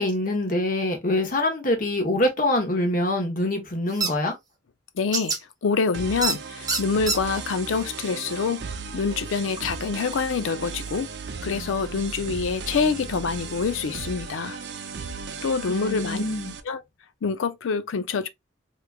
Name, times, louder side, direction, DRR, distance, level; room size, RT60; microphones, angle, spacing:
voice 1, 0.0-4.3 15.7-16.5, left 1 dB, 45° left, 1.0 m, -25 dB
sound 1, 4.0-4.1 5.1-5.4 6.2-6.4 6.7-7.2, right 4 dB, 20° right, 0.7 m, -24 dB
voice 2, 5.0-5.3 5.6-8.6 8.9-11.1 11.4-14.6 15.4-16.2 16.7-16.8 17.2-18.3, left 5 dB, 85° left, 0.4 m, -26 dB
sound 2, 5.9-16.6, right 5 dB, 60° right, 0.5 m, -36 dB
3.6 x 3.0 x 2.2 m
head